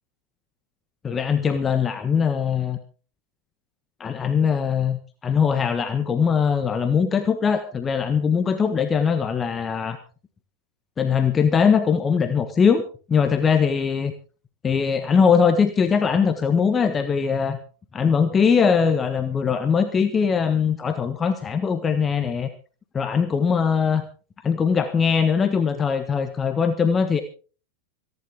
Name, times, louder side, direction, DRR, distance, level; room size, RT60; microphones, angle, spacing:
voice 1, 1.0-2.8 4.0-10.0 11.0-12.8 13.1-14.1 14.6-17.6 17.9-22.5 22.9-24.0 24.4-27.2, left 6 dB, 20° left, 9 dB, 1.4 m, -21 dB
26.0 x 11.0 x 3.6 m, 0.38 s
figure-of-eight pair, 90°, 0 cm